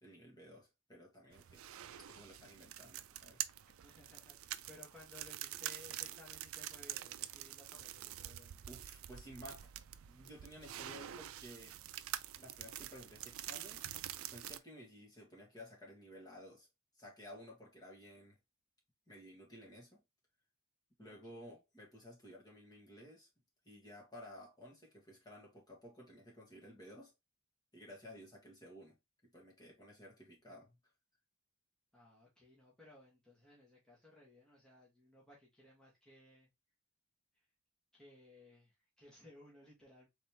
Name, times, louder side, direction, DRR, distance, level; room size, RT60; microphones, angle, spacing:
voice 1, 0.0-1.6 2.1-3.4 8.7-9.7 10.1-11.8 12.4-13.8 14.3-16.7 17.0-18.4 19.1-20.0 21.0-23.3 23.6-27.1 27.7-29.0 29.2-30.8, equal, 20° left, 1.8 m, -55 dB
sound 1, 1.3-14.6, right 12 dB, 75° right, 0.4 m, -46 dB
voice 2, 3.8-8.6 21.0-21.6 31.9-36.5 37.9-40.1, left 2 dB, 5° left, 1.6 m, -60 dB
4.1 x 3.5 x 2.9 m
head